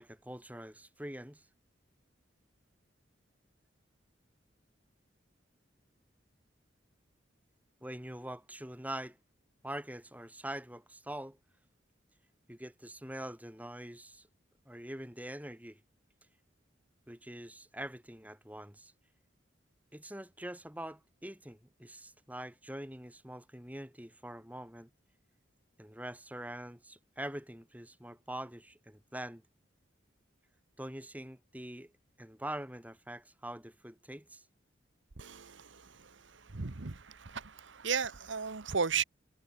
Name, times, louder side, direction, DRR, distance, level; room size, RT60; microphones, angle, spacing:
voice 1, 0.0-1.5 7.8-9.2 9.6-11.4 12.5-14.3 14.7-15.8 17.1-18.9 19.9-24.9 25.8-29.4 30.8-31.9 32.2-34.5, right 1 dB, 10° right, 6.4 m, -44 dB
voice 2, 35.2-39.0, right 6 dB, 75° right, 1.1 m, -36 dB
head